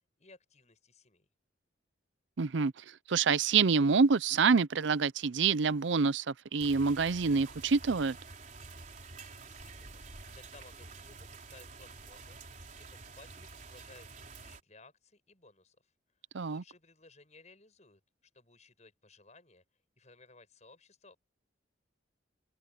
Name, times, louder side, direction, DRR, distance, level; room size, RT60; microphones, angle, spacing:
voice 1, 0.2-1.3 9.4-15.9 16.4-19.6 20.0-21.2, left 3 dB, 35° left, 7.4 m, -59 dB
voice 2, 2.4-8.2 16.3-16.6, right 5 dB, 70° right, 0.6 m, -27 dB
sound 1, 6.6-14.6, right 3 dB, 40° right, 4.4 m, -49 dB
head